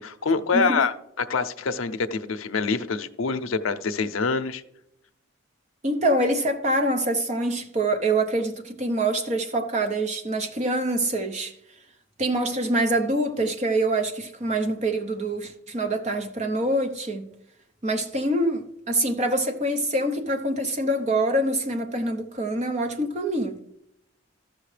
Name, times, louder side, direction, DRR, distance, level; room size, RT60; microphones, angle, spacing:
voice 1, 0.0-4.6, left 4 dB, 85° left, 0.6 m, -26 dB
voice 2, 5.8-11.5 12.2-17.3 17.8-23.6, right 1 dB, 35° right, 0.8 m, -25 dB
13.5 x 6.3 x 3.3 m
head